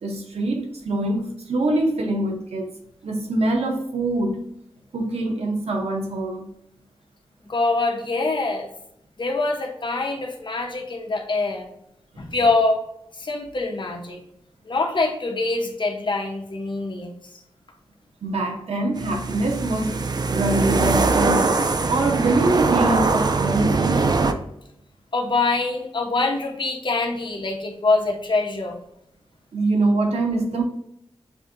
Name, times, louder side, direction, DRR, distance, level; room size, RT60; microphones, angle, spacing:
voice 1, 0.0-2.7 3.0-4.4 4.9-6.5 18.2-20.0 20.3-21.5 21.9-24.2 29.5-30.6, right 2 dB, 90° right, 0.9 m, -24 dB
voice 2, 7.5-8.7 9.2-11.7 12.2-12.8 13.2-14.2 14.7-17.2 25.1-28.8, left 3 dB, 50° left, 0.9 m, -24 dB
sound 1, 19.0-24.3, right 3 dB, 40° right, 0.4 m, -22 dB
7.0 x 2.7 x 2.6 m
wide cardioid pair, 85°, 10 cm